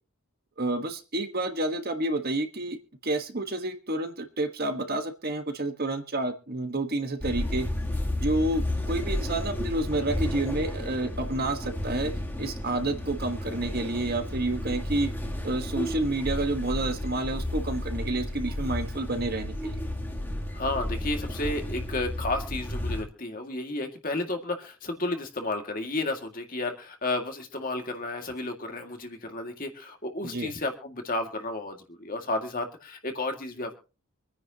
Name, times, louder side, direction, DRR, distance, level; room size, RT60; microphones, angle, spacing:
voice 1, 0.6-2.8 3.0-7.7 8.2-12.1 12.4-15.1 15.4-19.8 30.2-30.5, right 2 dB, 45° right, 7 dB, 1.3 m, -29 dB
sound 1, 7.2-23.0, left 1 dB, 10° left, 1.7 m, -32 dB
voice 2, 20.5-33.8, left 2 dB, 40° left, 4 dB, 2.1 m, -32 dB
25.5 x 9.9 x 2.9 m, 0.33 s
head